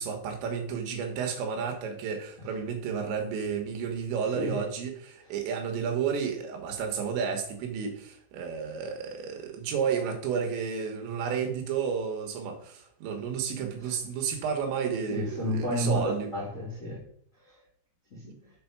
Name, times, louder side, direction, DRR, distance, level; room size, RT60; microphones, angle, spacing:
voice 1, 0.0-16.3, right 6 dB, 70° right, 3 dB, 3.4 m, -32 dB
voice 2, 15.1-17.0 17.5-17.6 18.1-18.5, equal, 25° left, -8 dB, 1.7 m, -31 dB
8.0 x 5.0 x 5.9 m, 0.68 s
omnidirectional pair, 5.7 m